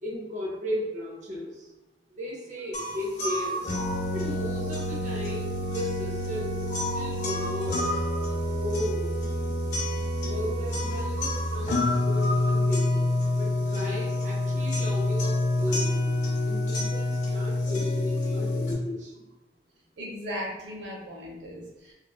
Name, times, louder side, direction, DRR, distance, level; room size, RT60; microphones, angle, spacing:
voice 1, 0.0-1.7 2.1-3.6 4.1-6.6 6.9-8.0 8.6-9.2 10.2-13.1 13.4-16.0 16.5-19.2, left 1 dB, 40° right, -4 dB, 0.7 m, -35 dB
sound 1, 2.7-18.7, left 1 dB, 40° left, 0.5 m, -27 dB
voice 2, 20.0-21.9, equal, 90° right, -2 dB, 0.6 m, -37 dB
3.0 x 2.3 x 2.3 m, 1.0 s
head